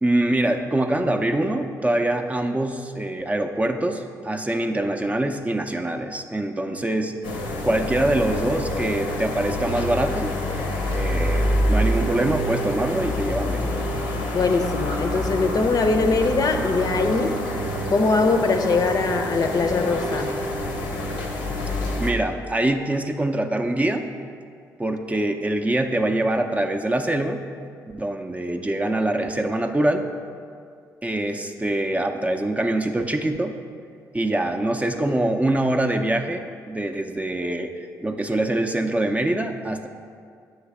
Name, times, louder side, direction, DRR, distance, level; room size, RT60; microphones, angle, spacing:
voice 1, 0.0-7.1 7.6-10.3 10.9-13.8 22.0-24.1 24.8-27.4 27.9-30.0 31.0-33.5 34.1-37.7 38.0-39.9, right 1 dB, 15° right, 4 dB, 0.5 m, -24 dB
sound 1, 7.2-22.1, equal, 80° left, 0.7 m, -26 dB
voice 2, 14.3-17.4 17.9-20.4, left 3 dB, 50° left, 5 dB, 0.6 m, -22 dB
7.6 x 3.2 x 5.9 m, 2.2 s
hypercardioid pair, 45°, 8 cm